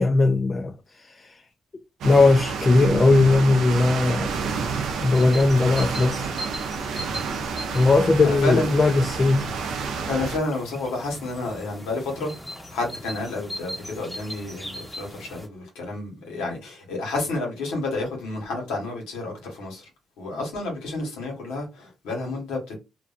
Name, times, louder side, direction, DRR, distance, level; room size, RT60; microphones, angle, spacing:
voice 1, 0.0-1.4 2.0-4.3 5.0-6.3 7.7-9.5, left 3 dB, 40° left, 0.4 m, -19 dB
sound 1, 2.0-10.4, right 5 dB, 80° right, 0.5 m, -29 dB
sound 2, 4.3-15.5, equal, 10° left, 1.0 m, -39 dB
voice 2, 8.2-8.7 10.1-12.3 12.7-19.9 20.2-22.8, left 2 dB, 90° left, 1.2 m, -30 dB
2.5 x 2.3 x 2.4 m
supercardioid pair, 50°, 0 cm